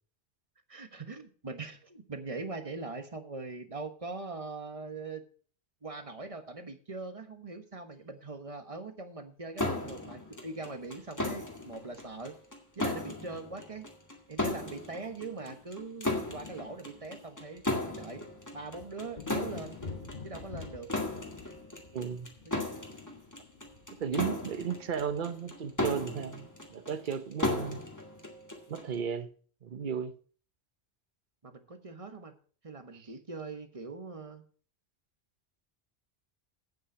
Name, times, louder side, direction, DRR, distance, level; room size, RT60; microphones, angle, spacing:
voice 1, 0.7-5.2 5.8-12.4 12.7-13.9 14.3-18.2 18.5-19.7 20.2-20.9 22.4-22.7 24.2-24.5 31.4-32.3 32.6-34.4, right 3 dB, 30° right, 1.3 m, -42 dB
sound 1, 9.6-28.9, left 2 dB, 15° left, 2.0 m, -36 dB
sound 2, 11.0-12.5 13.8-13.9 14.1-14.3 14.6-26.7, left 4 dB, 45° left, 1.3 m, -50 dB
voice 2, 21.9-22.3 24.0-27.8 28.7-29.3 29.6-30.1 32.9-33.1, right 7 dB, 50° right, 1.0 m, -34 dB
8.8 x 7.9 x 6.1 m
omnidirectional pair, 1.1 m